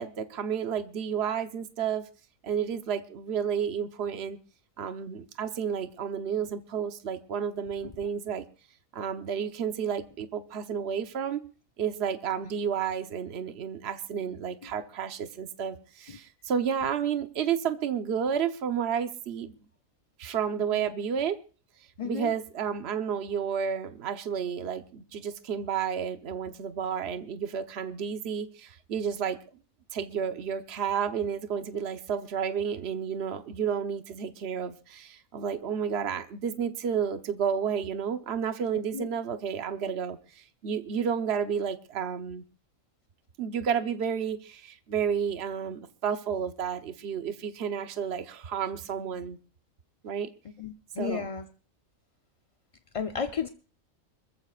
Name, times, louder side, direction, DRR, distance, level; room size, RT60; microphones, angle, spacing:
voice 1, 0.0-2.0 2.4-4.4 4.8-8.5 8.9-11.4 11.8-19.5 20.2-21.4 22.0-29.4 29.9-42.4 43.4-49.4 50.0-50.3 51.0-51.3, right 7 dB, 55° right, 1.2 m, -31 dB
voice 2, 22.0-22.3 38.9-39.1 50.6-51.4 52.9-53.5, left 7 dB, 35° left, 0.5 m, -33 dB
26.0 x 14.5 x 2.4 m
omnidirectional pair, 1.4 m